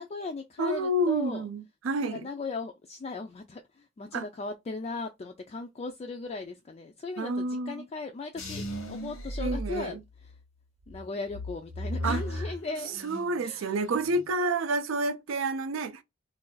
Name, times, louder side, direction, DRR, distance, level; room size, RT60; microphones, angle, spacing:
voice 1, 0.0-1.4 2.0-10.0 10.9-13.0 13.4-13.8 14.4-14.6, left 3 dB, 30° left, 0.3 m, -38 dB
voice 2, 0.6-2.3 4.1-4.3 7.2-7.9 9.4-10.0 12.0-12.5 13.0-16.0, right 2 dB, 65° right, 0.4 m, -29 dB
sound 1, 8.4-10.4 10.9-13.4 13.7-14.3, equal, 90° left, 1.0 m, -36 dB
2.5 x 2.3 x 3.8 m
head